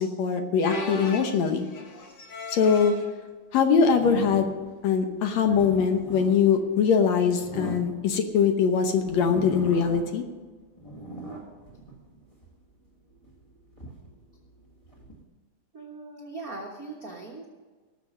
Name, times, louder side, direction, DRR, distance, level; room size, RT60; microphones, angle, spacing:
voice 1, 0.0-1.7 2.5-2.9 3.5-4.5 4.8-10.2, left 6 dB, 65° left, 6 dB, 2.0 m, -22 dB
sound 1, 0.6-3.1 3.8-4.1 4.4-4.5 5.5-5.7 7.3-7.4, left 2 dB, 50° left, 1.3 m, -37 dB
sound 2, 3.9-4.8 5.3-8.5 9.0-10.3 10.6-12.5 13.1-15.2, right 1 dB, 20° left, 0.9 m, -40 dB
voice 2, 15.7-17.5, right 3 dB, 65° right, -1 dB, 0.8 m, -39 dB
19.0 x 6.9 x 5.4 m, 1.4 s
omnidirectional pair, 3.7 m